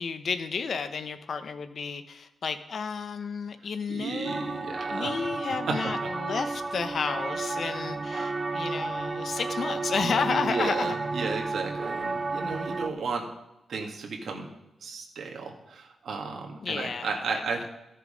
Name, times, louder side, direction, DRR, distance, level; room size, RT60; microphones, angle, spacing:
voice 1, 0.0-11.0 16.6-17.2, left 5 dB, 55° left, 10 dB, 0.8 m, -32 dB
voice 2, 3.9-5.1 5.7-5.9 10.0-13.3 13.7-14.5 14.8-17.7, right 4 dB, 65° right, 1 dB, 2.0 m, -34 dB
sound 1, 4.2-12.9, right 3 dB, 25° right, 0.4 m, -32 dB
14.5 x 6.7 x 5.1 m, 0.94 s
wide cardioid pair, 135°, 0 cm